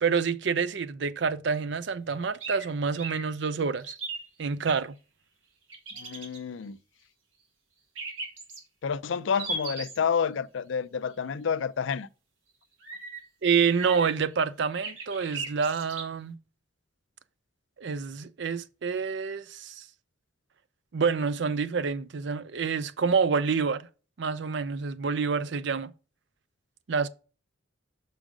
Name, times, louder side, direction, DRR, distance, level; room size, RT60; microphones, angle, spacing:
voice 1, 0.0-3.9 4.4-4.9 13.4-16.3 17.8-19.9 20.9-23.9 24.2-25.9 26.9-27.1, right 5 dB, 60° right, 0.5 m, -27 dB
sound 1, 2.4-2.7 3.0-3.2 3.8-4.7 5.7-6.4 8.0-8.6 9.3-10.0 12.8-13.2 13.7-14.3 14.8-16.0, right 3 dB, 80° right, 2.0 m, -36 dB
voice 2, 6.0-6.8 8.8-12.1, left 6 dB, 70° left, 0.4 m, -29 dB
6.3 x 5.1 x 4.9 m
head